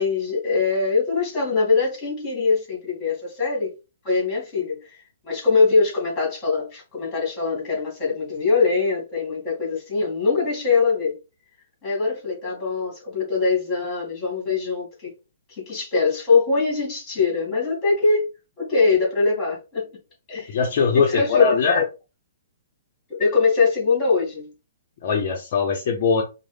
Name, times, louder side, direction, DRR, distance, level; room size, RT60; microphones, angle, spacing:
voice 1, 0.0-3.7 4.0-11.2 11.8-15.1 15.6-18.3 18.6-19.9 20.3-20.6 20.9-21.8 23.1-24.5, left 4 dB, 20° left, 2.4 m, -22 dB
voice 2, 20.5-21.8 25.0-26.2, left 5 dB, 50° left, 0.7 m, -21 dB
5.2 x 2.1 x 3.3 m
hypercardioid pair, 150°, 0 cm